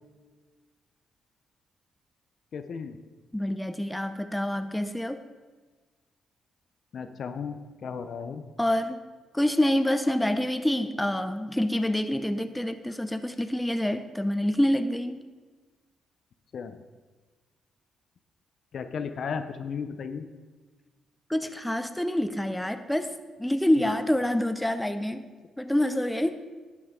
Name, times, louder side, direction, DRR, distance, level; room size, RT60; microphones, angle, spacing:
voice 1, 2.5-3.0 6.9-8.4 16.5-16.8 18.7-20.3 23.8-23.9, left 6 dB, 60° left, 9 dB, 0.7 m, -35 dB
voice 2, 3.3-5.2 8.6-9.0 9.3-15.2 21.3-25.3 25.6-26.4, left 1 dB, 5° left, 9 dB, 0.6 m, -27 dB
12.0 x 8.5 x 3.7 m, 1.4 s
cardioid pair, 80°, 0 cm